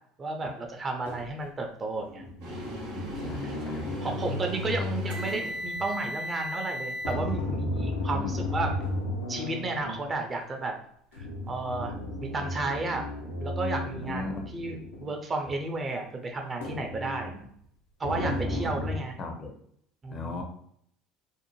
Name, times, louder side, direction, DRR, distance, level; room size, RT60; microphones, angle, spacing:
voice 1, 0.2-2.3 2.7-3.1 3.4-3.5 4.0-8.7 9.3-10.7 11.1-11.9 12.2-13.1 13.4-17.5 18.0-19.2 20.0-20.4, right 3 dB, 30° right, 3 dB, 0.5 m, -33 dB
sound 1, 1.0-1.3 2.0-5.9 7.0-10.1 11.1-15.1 15.4-15.5 16.6-17.5 18.0-19.0, left 1 dB, 85° left, 0.6 m, -34 dB
sound 2, 2.4-7.1, equal, 70° right, 0.8 m, -37 dB
voice 2, 3.2-4.1 4.8-4.9 7.9-8.4 14.0-14.5 18.2-18.6 19.2-19.5 20.1-20.4, left 3 dB, 40° left, 4 dB, 0.5 m, -37 dB
2.5 x 2.1 x 3.0 m, 0.67 s
hypercardioid pair, 70°, 0 cm